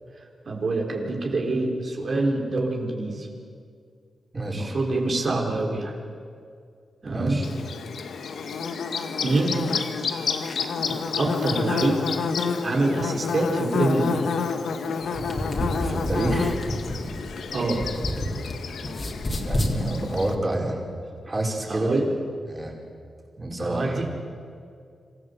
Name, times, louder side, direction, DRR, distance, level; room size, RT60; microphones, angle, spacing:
voice 1, 0.5-3.3 4.5-6.0 7.0-7.4 9.2-9.7 10.9-12.2 12.6-14.2 17.5-17.9 21.7-22.1 23.6-24.1, right 2 dB, 60° right, 1 dB, 3.9 m, -25 dB
voice 2, 4.3-4.8 7.0-7.5 15.7-16.6 19.4-20.8 21.2-22.0 22.5-22.7 23.4-24.0, right 1 dB, 30° right, -1 dB, 5.1 m, -28 dB
Bird / Buzz, 7.4-20.3, left 5 dB, 90° left, 1.3 m, -29 dB
sound 1, 15.0-18.5 18.8-19.8, left 1 dB, 40° left, 3.5 m, -29 dB
26.5 x 15.0 x 8.2 m, 2.2 s
cardioid pair, 65°, 0 cm